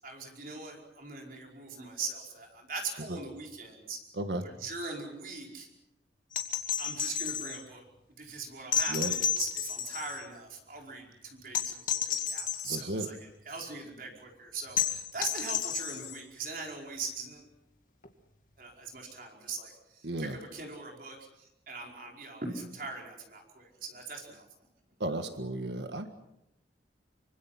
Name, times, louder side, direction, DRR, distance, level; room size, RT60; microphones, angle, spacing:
voice 1, 0.0-4.0 4.4-5.7 6.8-7.8 8.2-17.5 18.6-24.5, right 4 dB, 50° right, 1 dB, 5.1 m, -41 dB
voice 2, 4.2-4.5 8.9-9.1 12.7-13.1 20.0-20.4 25.0-26.1, right 1 dB, 80° right, 8 dB, 1.7 m, -34 dB
sound 1, 6.3-7.6 8.7-10.2 11.5-12.8 14.8-16.2 18.0-18.1, left 8 dB, 45° left, 2.2 m, -32 dB
25.5 x 25.0 x 5.9 m, 0.82 s
head